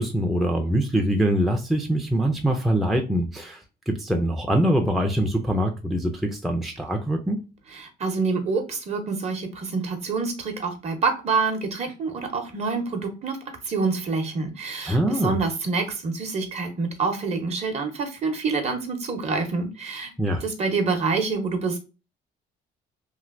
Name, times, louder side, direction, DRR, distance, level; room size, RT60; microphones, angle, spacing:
voice 1, 0.0-7.4 14.9-15.4 20.2-20.4, right 1 dB, ahead, 0.4 m, -23 dB
voice 2, 7.7-13.4 13.6-20.1 20.4-21.8, right 4 dB, 40° right, 0.9 m, -27 dB
3.1 x 2.5 x 2.4 m
cardioid pair, 110°, 17 cm